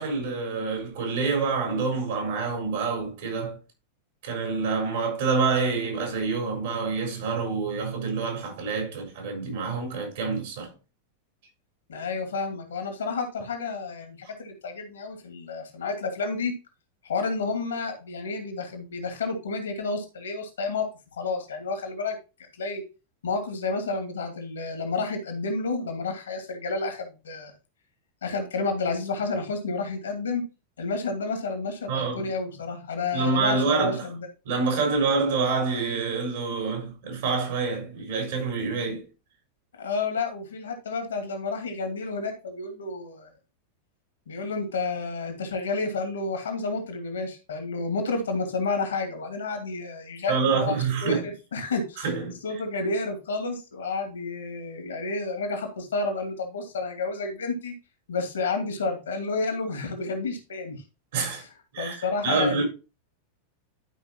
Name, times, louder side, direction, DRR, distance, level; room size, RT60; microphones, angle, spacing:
voice 1, 0.0-3.6 4.2-10.7 31.9-32.3 33.1-34.0 34.4-39.0 50.3-51.2 52.0-52.4 61.1-61.4 61.7-62.0 62.2-62.6, right 4 dB, 55° right, 4.3 m, -27 dB
voice 2, 11.9-16.5 17.0-20.9 21.2-22.2 22.5-22.8 23.2-27.5 28.2-30.4 30.8-34.3 39.8-43.3 44.3-52.0 52.4-57.7 58.1-60.8 61.3-61.5 61.8-62.6, left 3 dB, 65° left, 2.4 m, -30 dB
12.5 x 5.2 x 3.0 m
figure-of-eight pair, 90°, 0 cm